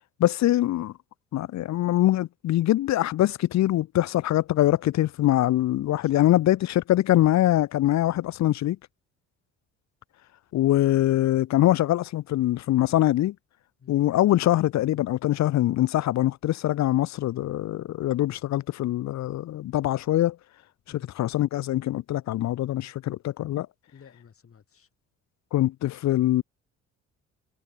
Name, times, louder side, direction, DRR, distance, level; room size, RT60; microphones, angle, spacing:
voice 1, 0.2-0.9 1.3-8.8 10.5-13.3 13.9-20.4 21.2-23.7 25.5-26.4, left 14 dB, 65° left, 0.6 m, -23 dB
voice 2, 6.0-6.5 13.8-14.0 20.9-21.2 23.9-24.9, left 7 dB, 45° left, 5.8 m, -53 dB
cardioid pair, 90°, 30 cm